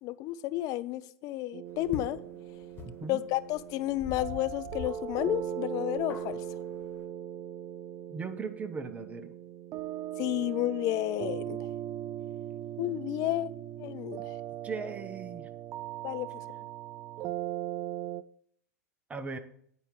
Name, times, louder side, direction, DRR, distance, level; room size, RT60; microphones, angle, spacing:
voice 1, 0.0-2.2 3.1-6.4 10.2-11.6 12.8-13.5 13.8-14.2 16.0-16.3, left 15 dB, 45° left, 14 dB, 0.6 m, -31 dB
sound 1, 1.5-18.2, right 11 dB, 35° right, 0.4 m, -39 dB
sound 2, 1.8-7.0, left 6 dB, 25° left, 1.6 m, -45 dB
voice 2, 2.8-3.2 8.1-9.3 14.6-15.5 19.1-19.4, right 5 dB, 15° right, 7 dB, 1.0 m, -38 dB
9.2 x 4.5 x 6.9 m, 0.65 s
hypercardioid pair, 105°, 9 cm